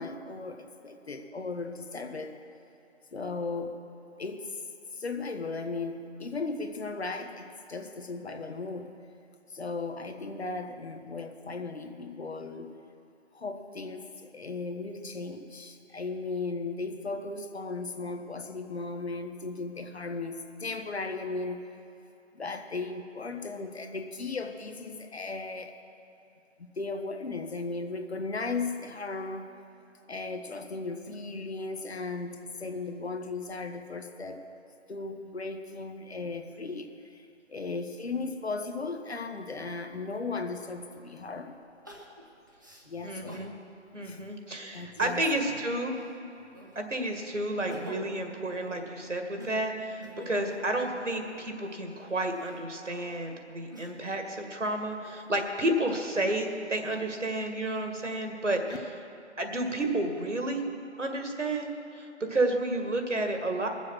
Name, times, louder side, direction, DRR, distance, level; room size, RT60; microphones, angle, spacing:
voice 1, 0.0-2.4 3.1-3.8 4.2-4.6 4.9-8.9 9.5-12.8 13.3-21.7 22.3-25.8 26.6-29.5 30.1-34.5 34.9-41.6 42.9-43.5 44.0-44.2 44.7-45.5, left 3 dB, 60° left, 6 dB, 1.2 m, -36 dB
Crying sobbing, 41.8-43.5 44.1-44.2 44.8-45.5 45.9-46.9 47.4-51.4 52.1-54.2 54.7-55.6, right 1 dB, 15° right, 0.7 m, -46 dB
voice 2, 43.0-43.5 43.9-46.0 46.8-58.8 59.4-60.7 61.0-63.7, right 1 dB, 80° right, 4 dB, 2.0 m, -31 dB
21.0 x 7.4 x 6.2 m, 2.7 s
figure-of-eight pair, 155°, 37 cm